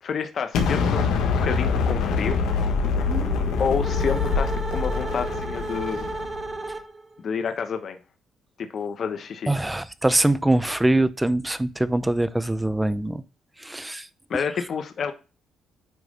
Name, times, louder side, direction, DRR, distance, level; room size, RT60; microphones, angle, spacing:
voice 1, 0.0-2.4 3.6-6.1 7.2-8.0 8.6-9.5 14.3-15.1, left 6 dB, 55° left, 1.0 m, -29 dB
Explosion, 0.5-6.5, left 5 dB, 90° left, 1.4 m, -25 dB
sound 1, 3.0-7.2, right 2 dB, 25° right, 1.0 m, -33 dB
voice 2, 9.5-13.2 13.6-14.1, right 1 dB, 10° right, 0.6 m, -23 dB
9.1 x 3.2 x 5.0 m
cardioid pair, 90°, 0 cm